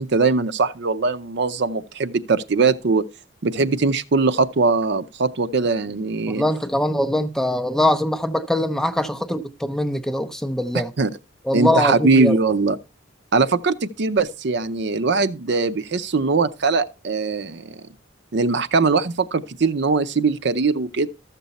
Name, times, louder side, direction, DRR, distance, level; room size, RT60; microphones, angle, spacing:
voice 1, 0.0-3.0 3.4-6.4 11.0-11.1 11.5-12.8 13.3-17.8 18.3-21.1, right 4 dB, 60° right, 0.6 m, -21 dB
voice 2, 6.3-10.9 11.5-12.3, left 1 dB, 5° left, 0.5 m, -22 dB
13.5 x 6.8 x 4.1 m
head